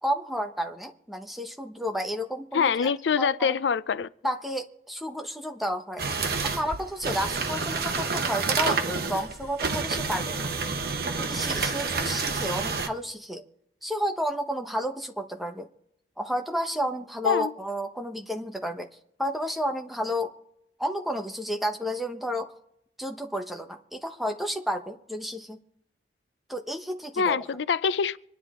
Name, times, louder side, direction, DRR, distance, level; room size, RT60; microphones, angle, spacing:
voice 1, 0.0-2.9 3.2-3.6 4.2-10.5 11.0-13.4 13.8-15.7 16.2-18.9 19.2-20.3 20.8-22.5 23.0-25.6 26.5-27.4, equal, ahead, 1.0 m, -31 dB
voice 2, 2.5-4.1 17.2-17.5 27.2-28.2, left 6 dB, 80° left, 0.4 m, -25 dB
sound 1, 6.0-12.9, right 4 dB, 60° right, 1.1 m, -29 dB
25.5 x 10.0 x 3.7 m
head